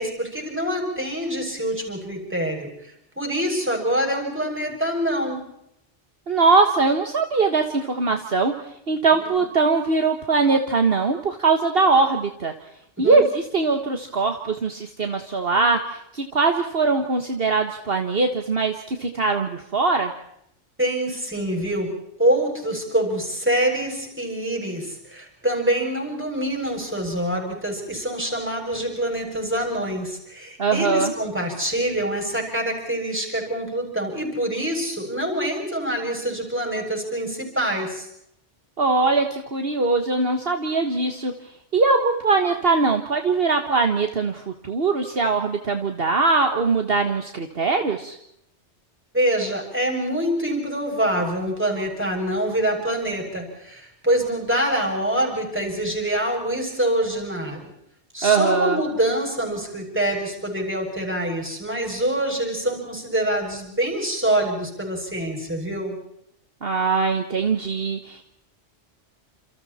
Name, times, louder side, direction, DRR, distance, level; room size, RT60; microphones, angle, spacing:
voice 1, 0.0-2.7 3.2-5.4 9.2-9.4 13.0-13.3 20.8-21.9 22.2-38.1 49.1-57.7 58.1-66.0, right 1 dB, 10° right, 1 dB, 7.4 m, -25 dB
voice 2, 6.3-8.5 8.9-12.5 13.0-20.1 30.6-31.1 38.8-41.3 41.7-48.2 58.2-58.8 66.6-68.2, right 4 dB, 55° right, 5 dB, 1.8 m, -21 dB
30.0 x 28.0 x 4.4 m, 0.77 s
omnidirectional pair, 1.2 m